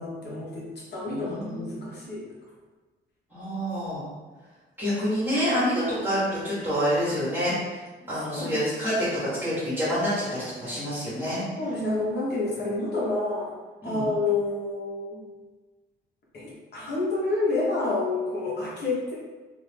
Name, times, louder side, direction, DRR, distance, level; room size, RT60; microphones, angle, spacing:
voice 1, 0.0-2.3 6.1-6.2 8.4-8.6 11.6-13.6 13.8-15.3 16.3-19.1, left 2 dB, 55° left, -5 dB, 1.4 m, -29 dB
voice 2, 1.1-1.9 3.3-4.0 4.8-7.8 8.1-11.4 13.8-14.1, equal, 10° right, -11 dB, 1.5 m, -27 dB
3.0 x 2.9 x 3.5 m, 1.3 s
cardioid pair, 90°, 20 cm